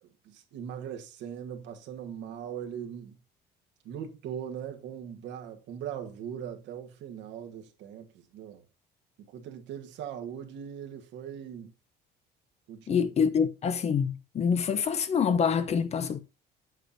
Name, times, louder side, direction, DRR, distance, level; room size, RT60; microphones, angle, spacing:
voice 1, 0.0-3.2 3.8-8.6 9.3-11.7 12.7-13.1, right 8 dB, 70° right, 1.5 m, -40 dB
voice 2, 12.9-16.2, left 6 dB, 35° left, 0.8 m, -26 dB
8.1 x 6.6 x 2.7 m
cardioid pair, 140°, 19 cm